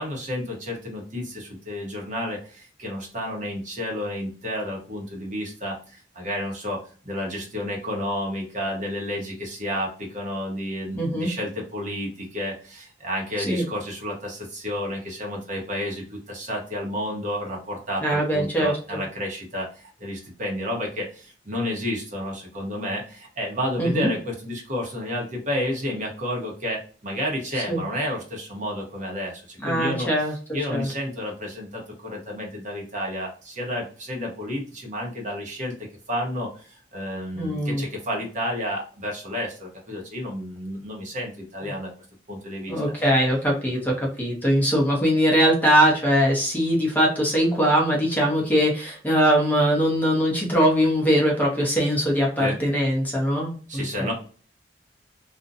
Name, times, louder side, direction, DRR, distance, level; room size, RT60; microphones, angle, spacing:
voice 1, 0.0-30.1 30.5-41.9 42.3-42.7 52.4-52.6 53.7-54.1, left 1 dB, 45° right, 0 dB, 0.9 m, -31 dB
voice 2, 10.9-11.3 13.5-13.6 18.0-19.0 23.8-24.1 27.7-27.8 29.6-30.3 30.7-30.9 37.4-37.8 41.6-41.7 42.7-54.1, equal, 10° left, -2 dB, 0.7 m, -21 dB
2.5 x 2.1 x 2.5 m, 0.41 s
head